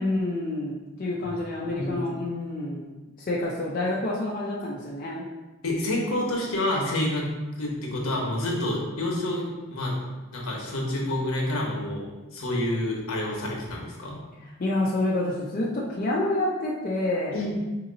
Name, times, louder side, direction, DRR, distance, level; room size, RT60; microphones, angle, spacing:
voice 1, 0.0-2.9 3.2-5.2 14.6-17.4, left 2 dB, 40° left, -5 dB, 0.5 m, -28 dB
voice 2, 1.6-1.9 5.6-7.3 7.6-9.9 10.3-12.0 12.3-14.2 17.3-17.5, left 1 dB, 70° left, -2 dB, 1.0 m, -28 dB
3.7 x 2.9 x 3.9 m, 1.1 s
head